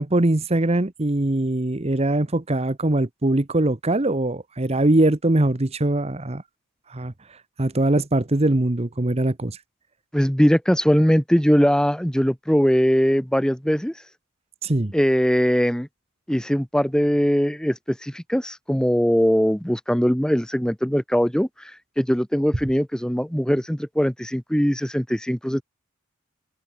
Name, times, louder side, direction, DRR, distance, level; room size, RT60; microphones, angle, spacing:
voice 1, 0.0-6.4 6.9-9.6 14.6-14.9, right 1 dB, 30° right, 1.0 m, -22 dB
voice 2, 10.1-13.9 14.9-15.9 16.3-25.6, equal, 5° left, 1.2 m, -21 dB
head